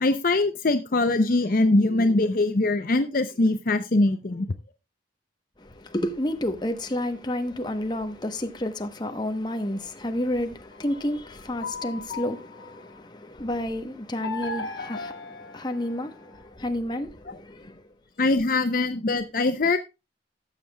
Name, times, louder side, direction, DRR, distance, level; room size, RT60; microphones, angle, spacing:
voice 1, 0.0-4.5 18.2-19.8, left 2 dB, 50° left, 0.6 m, -22 dB
voice 2, 5.6-17.8, left 1 dB, 25° left, 0.9 m, -30 dB
sound 1, 10.7-13.0 14.2-16.5, left 3 dB, 85° left, 1.6 m, -37 dB
18.0 x 7.2 x 2.2 m
head